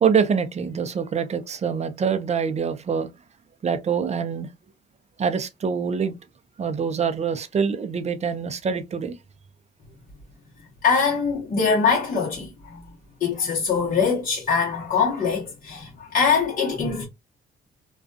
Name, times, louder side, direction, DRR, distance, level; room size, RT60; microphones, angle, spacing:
voice 1, 0.0-3.1 3.6-4.5 5.2-6.2 6.6-9.2, right 6 dB, 35° right, 0.5 m, -25 dB
voice 2, 10.8-12.8 13.2-17.0, left 5 dB, 45° left, 1.0 m, -23 dB
2.4 x 2.3 x 2.5 m
cardioid pair, 90°, 20 cm